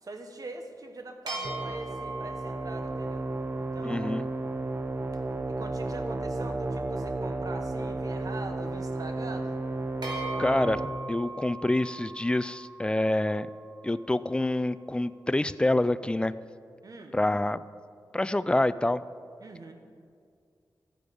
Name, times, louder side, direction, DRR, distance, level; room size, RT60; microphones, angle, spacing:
voice 1, 0.0-3.3 3.7-4.3 5.5-9.6 16.8-17.2 19.4-19.7, right 2 dB, 50° right, 5 dB, 1.1 m, -42 dB
sound 1, 1.3-4.9 10.0-14.4, right 2 dB, 70° right, 2.9 m, -40 dB
sound 2, 1.4-10.9, right 2 dB, 30° right, 0.6 m, -33 dB
voice 2, 3.8-4.2 10.4-10.8 11.1-13.5 13.8-16.3 17.1-17.6 18.1-19.0, left 1 dB, 15° left, 15 dB, 0.3 m, -26 dB
13.0 x 8.5 x 5.2 m, 2.2 s
wide cardioid pair, 115°, 8 cm